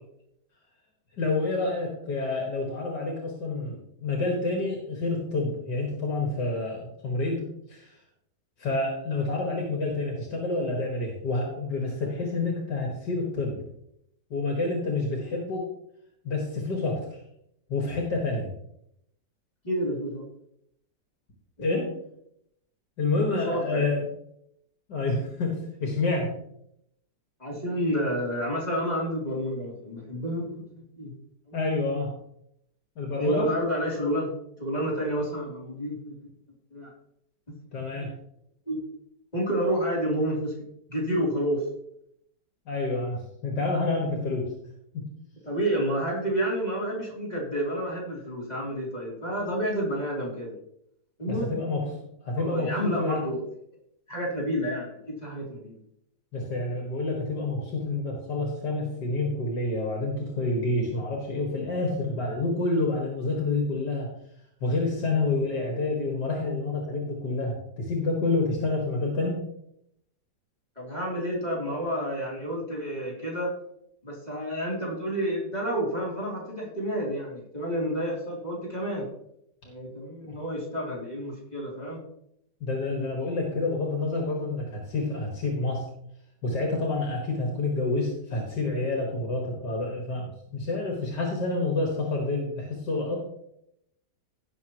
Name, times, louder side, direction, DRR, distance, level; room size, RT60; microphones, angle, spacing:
voice 1, 1.2-7.4 7.7-8.0 8.6-13.6 14.3-15.6 16.2-17.2 17.7-18.5 21.6-21.9 23.0-24.1 24.9-26.3 31.5-32.1 33.0-33.5 37.7-38.1 42.7-44.5 44.9-45.1 51.3-53.2 56.3-64.1 64.6-69.4 82.6-85.8 86.4-93.2, left 3 dB, 75° left, 0 dB, 2.4 m, -28 dB
voice 2, 19.6-20.2 21.6-21.7 23.3-23.9 27.4-30.5 31.0-31.1 31.5-31.6 33.2-34.3 34.6-36.2 36.7-36.9 37.9-38.1 38.7-38.8 39.3-40.5 40.9-41.6 45.4-50.5 51.2-51.7 52.4-53.4 54.1-55.8 70.8-73.5 74.0-79.1 79.6-82.0, equal, 25° left, -5 dB, 3.4 m, -29 dB
17.0 x 6.7 x 3.1 m, 0.75 s
omnidirectional pair, 1.8 m